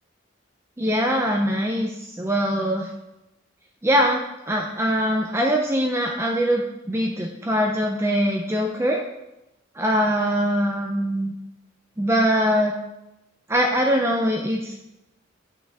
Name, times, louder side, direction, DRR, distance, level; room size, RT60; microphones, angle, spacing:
voice 1, 0.8-2.9 3.8-9.0 9.7-11.3 12.0-12.7 13.5-14.8, equal, 15° right, 1 dB, 0.6 m, -22 dB
7.7 x 6.1 x 3.5 m, 0.91 s
head